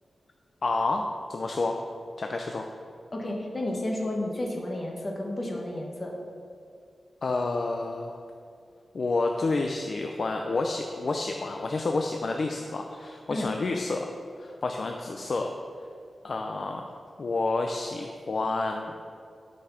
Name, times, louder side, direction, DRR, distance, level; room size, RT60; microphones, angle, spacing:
voice 1, 0.6-1.8 2.2-2.7 7.2-8.2 8.9-14.1 14.4-15.5 16.2-16.9 17.2-19.0, left 3 dB, 50° left, 3 dB, 0.6 m, -29 dB
voice 2, 3.1-6.1 13.3-13.5, left 1 dB, 30° left, 0 dB, 1.6 m, -32 dB
12.0 x 5.3 x 5.8 m, 2.4 s
wide cardioid pair, 130°, 0 cm